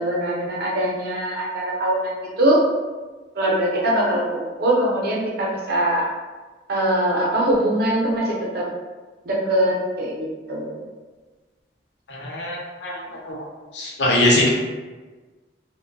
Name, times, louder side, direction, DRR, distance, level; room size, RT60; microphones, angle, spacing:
voice 1, 0.0-2.6 3.3-6.1 6.7-8.7 9.3-10.8, right 1 dB, 60° right, -3 dB, 0.6 m, -22 dB
voice 2, 12.1-12.9 13.2-13.5 13.7-14.5, left 1 dB, 80° left, -2 dB, 0.6 m, -21 dB
2.5 x 2.1 x 2.5 m, 1.3 s
head